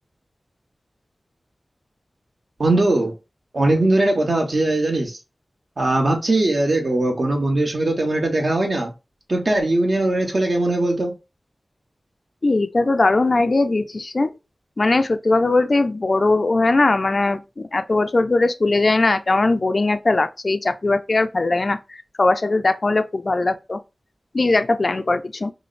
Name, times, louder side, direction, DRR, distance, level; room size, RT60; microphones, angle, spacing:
voice 1, 2.6-3.1 3.5-5.2 5.8-8.9 9.3-11.1, right 2 dB, 60° right, 1.1 m, -20 dB
voice 2, 12.4-14.3 14.8-23.8 24.3-25.5, left 2 dB, 55° left, 0.4 m, -20 dB
5.0 x 2.1 x 2.5 m
wide cardioid pair, 50°, 0 cm